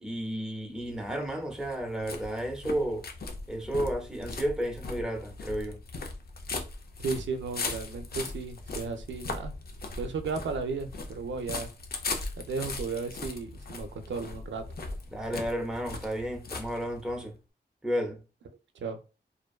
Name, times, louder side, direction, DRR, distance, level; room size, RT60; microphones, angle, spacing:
voice 1, 0.0-3.1 3.5-5.8 15.1-17.3 17.8-18.2, equal, 5° right, 0.5 m, -32 dB
sound 1, 0.7-17.3, left 3 dB, 55° left, 0.4 m, -39 dB
voice 2, 7.0-9.5 10.0-11.7 12.4-14.6 18.8-19.0, right 4 dB, 90° right, 0.4 m, -34 dB
2.5 x 2.2 x 2.3 m
wide cardioid pair, 110°, 19 cm